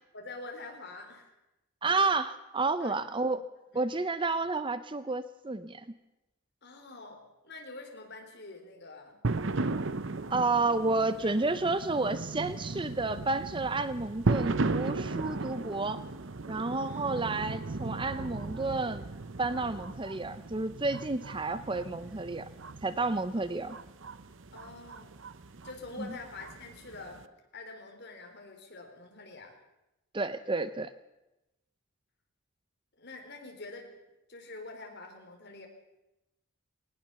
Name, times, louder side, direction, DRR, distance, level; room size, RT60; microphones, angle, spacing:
voice 1, 0.1-1.3 2.8-3.0 3.7-3.9 6.6-9.2 10.6-10.8 16.8-17.0 24.5-25.2 25.6-27.3 27.5-29.6 33.0-33.9 34.3-35.7, left 3 dB, 50° left, 3 dB, 4.0 m, -46 dB
voice 2, 1.8-3.5 3.7-5.8 10.3-16.0 16.5-19.0 19.4-22.5 22.8-23.8 26.0-26.1 30.1-30.9, right 3 dB, 20° right, 13 dB, 0.6 m, -31 dB
sound 1, 9.2-27.2, right 3 dB, 55° right, 0.8 m, -36 dB
20.0 x 19.0 x 6.9 m, 0.96 s
head